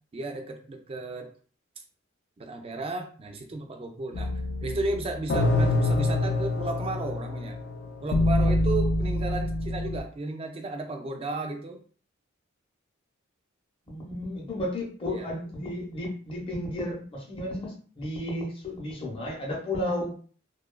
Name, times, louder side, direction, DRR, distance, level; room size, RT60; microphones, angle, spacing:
voice 1, 0.1-1.3 2.4-4.3 4.6-7.6 8.0-11.8 15.1-15.4, right 2 dB, 30° right, 4 dB, 0.4 m, -34 dB
sound 1, 4.1-10.0, left 2 dB, 55° left, 0.4 m, -26 dB
voice 2, 13.9-20.2, left 1 dB, 25° left, -2 dB, 0.7 m, -33 dB
2.7 x 2.2 x 2.2 m, 0.42 s
head